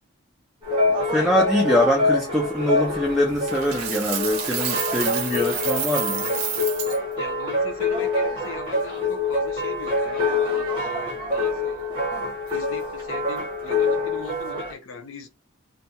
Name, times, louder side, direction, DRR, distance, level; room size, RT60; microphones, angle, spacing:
sound 1, 0.6-14.7, left 2 dB, 20° right, 0.8 m, -25 dB
voice 1, 1.1-6.3, left 1 dB, ahead, 0.3 m, -23 dB
Coin (dropping), 3.5-7.0, right 8 dB, 70° right, 0.6 m, -29 dB
voice 2, 7.2-11.9 12.5-15.3, left 5 dB, 60° left, 0.4 m, -39 dB
2.3 x 2.1 x 2.7 m
head